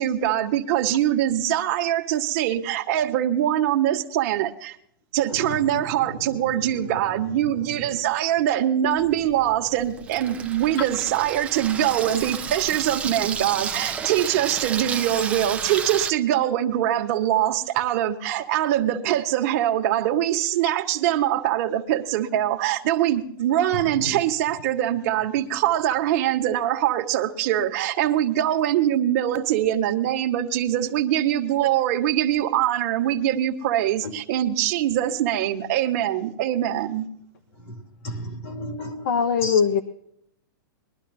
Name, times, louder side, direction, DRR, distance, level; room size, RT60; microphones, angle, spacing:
voice 1, 0.0-4.7 5.1-37.1, right 12 dB, 45° right, 4 dB, 1.4 m, -23 dB
voice 2, 5.3-6.9 7.4-8.0 24.0-24.2 37.6-39.1 39.4-39.6, left 1 dB, 40° left, 4 dB, 2.3 m, -35 dB
Water tap faucet / Sink (filling or washing), 9.0-16.1, right 6 dB, 10° right, 0.6 m, -32 dB
voice 3, 39.0-39.8, left 6 dB, 60° left, 7 dB, 1.2 m, -20 dB
22.0 x 12.0 x 2.7 m, 0.72 s
hypercardioid pair, 155°, 12 cm